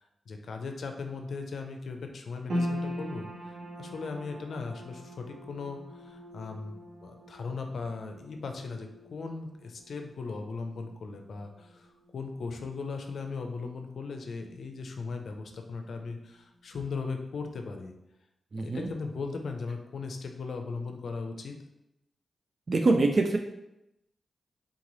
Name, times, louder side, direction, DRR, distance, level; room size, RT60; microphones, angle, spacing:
voice 1, 0.3-17.9 18.6-21.6, left 4 dB, 75° left, 4 dB, 0.5 m, -38 dB
sound 1, 2.5-14.9 15.2-16.1 16.6-16.7, equal, 75° right, 1.0 m, -41 dB
voice 2, 18.5-18.9 22.7-23.4, right 3 dB, 50° right, 4 dB, 0.4 m, -24 dB
3.8 x 3.0 x 3.9 m, 0.89 s
cardioid pair, 55°, 0 cm